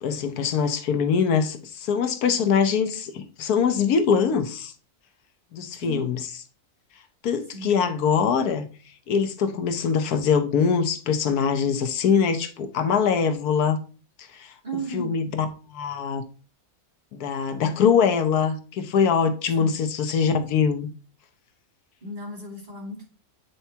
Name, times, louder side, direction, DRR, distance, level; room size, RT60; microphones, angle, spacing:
voice 1, 0.0-4.7 5.5-6.2 7.2-8.7 9.1-13.8 14.2-14.5 14.9-16.2 17.1-20.9, left 6 dB, 90° left, 1.4 m, -23 dB
voice 2, 14.6-15.1 19.6-19.7 22.0-23.1, right 2 dB, 30° right, 2.8 m, -34 dB
8.4 x 4.5 x 2.8 m
omnidirectional pair, 1.6 m